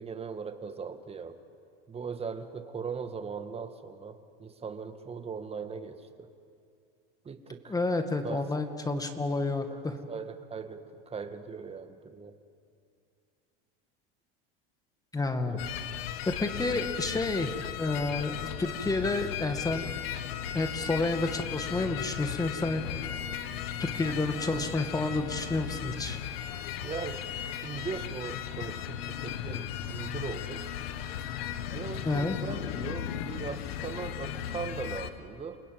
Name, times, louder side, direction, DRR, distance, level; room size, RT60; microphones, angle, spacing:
voice 1, 0.0-1.4 1.9-6.3 7.2-7.7 8.2-8.4 9.7-9.8 10.1-12.3 15.5-15.6 16.7-16.8 26.8-30.6 31.7-35.6, right 5 dB, 20° right, 8 dB, 1.9 m, -39 dB
voice 2, 7.7-10.0 15.1-15.6 16.3-19.9 20.5-23.1 23.8-26.2 32.1-32.4, left 2 dB, 10° left, 7 dB, 2.0 m, -30 dB
sound 1, 15.6-35.1, left 10 dB, 80° left, 1.7 m, -36 dB
29.5 x 20.0 x 9.4 m, 2.4 s
supercardioid pair, 125°, 30 cm